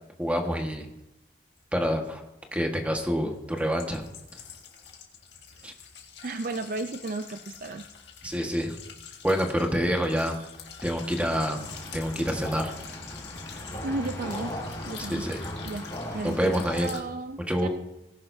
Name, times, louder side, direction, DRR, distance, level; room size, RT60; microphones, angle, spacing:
voice 1, 0.2-0.8 1.7-2.2 2.5-4.0 5.6-5.7 8.2-8.8 9.2-10.4 10.8-11.6 11.9-12.7 15.0-15.5 16.2-16.9 17.5-17.7, equal, 10° right, 3 dB, 1.5 m, -27 dB
sound 1, 1.6-1.7 2.9-17.0, left 7 dB, 70° left, 1.9 m, -46 dB
voice 2, 6.2-7.8 13.8-14.6 14.9-15.3 15.6-15.9 16.1-17.7, right 2 dB, 50° right, 9 dB, 0.5 m, -34 dB
sound 2, 11.3-16.8, left 1 dB, 25° left, 4.2 m, -38 dB
19.0 x 11.0 x 2.7 m, 0.93 s
head